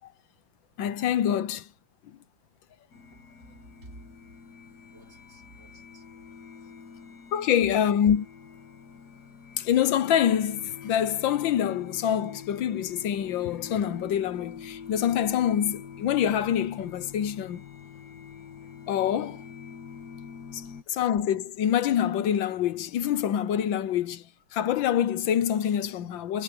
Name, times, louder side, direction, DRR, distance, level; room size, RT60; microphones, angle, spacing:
voice 1, 0.8-1.7 7.3-8.3 9.6-17.6 18.9-19.4 20.5-24.2 24.5-26.4, left 9 dB, 70° left, 1.5 m, -26 dB
sound 1, 2.9-20.8, left 7 dB, 55° left, 1.8 m, -45 dB
voice 2, 3.1-4.0 4.9-6.2 6.5-6.8 20.6-21.0, right 2 dB, 35° right, 4.6 m, -53 dB
omnidirectional pair, 2.3 m